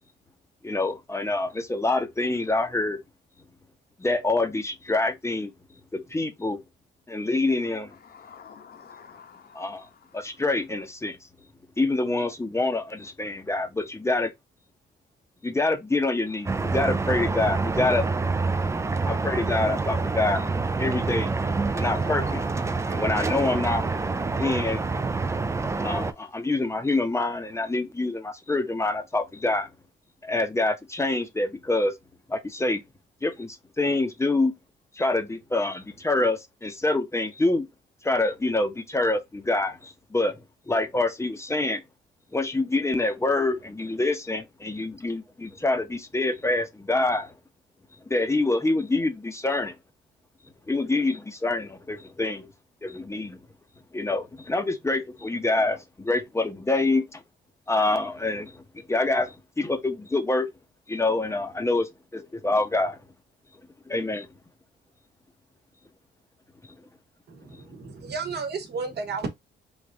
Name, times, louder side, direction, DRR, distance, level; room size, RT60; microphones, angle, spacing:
voice 1, 0.6-3.0 4.0-5.5 5.9-6.6 7.1-7.9 9.5-9.9 10.1-11.2 11.8-14.3 15.4-18.0 19.1-20.5 20.8-21.3 21.8-22.4 22.9-23.8 24.4-24.8 25.8-29.7 30.2-31.9 32.3-32.8 33.2-34.5 35.0-37.7 38.0-40.4 40.7-41.8 42.3-47.3 48.1-49.8 50.7-52.5 52.8-53.4 53.9-57.2 57.7-58.6 58.9-60.5 60.9-63.0 63.9-64.3 67.5-67.6, left 2 dB, 15° left, 0.7 m, -26 dB
voice 2, 8.0-10.4 21.2-23.1, left 6 dB, 50° left, 0.9 m, -49 dB
sound 1, 16.5-26.1, right 3 dB, 15° right, 0.4 m, -27 dB
voice 3, 67.3-69.3, right 4 dB, 55° right, 1.1 m, -33 dB
3.4 x 2.5 x 3.7 m
cardioid pair, 90°, 20 cm